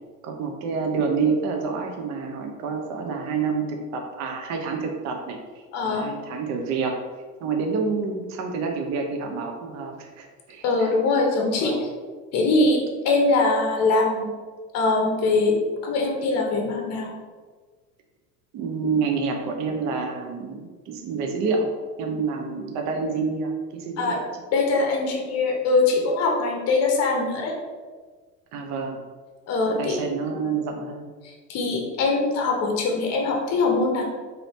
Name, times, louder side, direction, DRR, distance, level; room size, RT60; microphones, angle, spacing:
voice 1, 0.2-7.0 7.4-10.9 11.6-11.9 18.5-21.7 22.0-24.2 28.5-29.0 29.6-31.1, right 4 dB, 35° right, 3 dB, 0.6 m, -28 dB
voice 2, 5.7-6.1 10.6-11.7 12.3-12.8 13.0-14.3 14.7-15.5 15.8-17.1 24.0-24.2 24.5-27.5 29.5-30.0 31.2-34.0, left 3 dB, 35° left, 1 dB, 0.8 m, -22 dB
3.9 x 2.8 x 3.1 m, 1.4 s
figure-of-eight pair, 75°, 49 cm